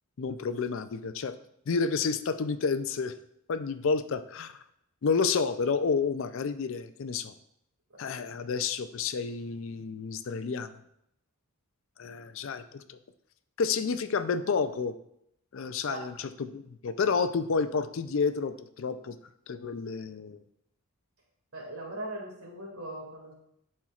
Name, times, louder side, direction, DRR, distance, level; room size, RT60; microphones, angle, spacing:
voice 1, 0.2-1.4 1.7-3.2 3.5-4.5 5.0-7.3 8.0-10.8 12.0-13.0 13.6-14.9 15.5-19.2 19.5-20.4, left 5 dB, 60° left, 11 dB, 0.4 m, -30 dB
voice 2, 21.5-23.3, right 1 dB, 75° right, -1 dB, 2.1 m, -39 dB
11.5 x 4.3 x 2.4 m, 0.76 s
head